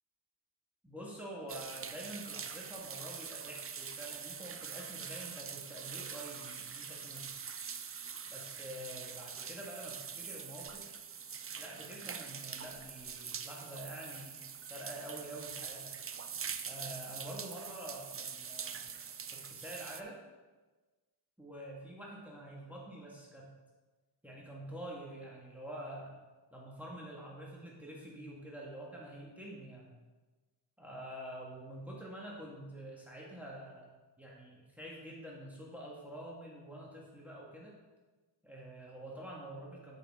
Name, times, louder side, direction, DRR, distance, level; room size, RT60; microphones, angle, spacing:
voice 1, 0.8-7.3 8.3-10.9 11.6-14.4 14.7-16.0 16.6-18.8 19.5-20.2 21.4-23.5 24.2-26.1 26.5-29.9 30.8-33.9 34.2-37.7 38.4-40.0, right 1 dB, 5° right, -4 dB, 1.6 m, -47 dB
sound 1, 1.5-20.0, right 6 dB, 35° right, 0.5 m, -44 dB
8.2 x 6.6 x 3.6 m, 1.2 s
wide cardioid pair, 85°, 42 cm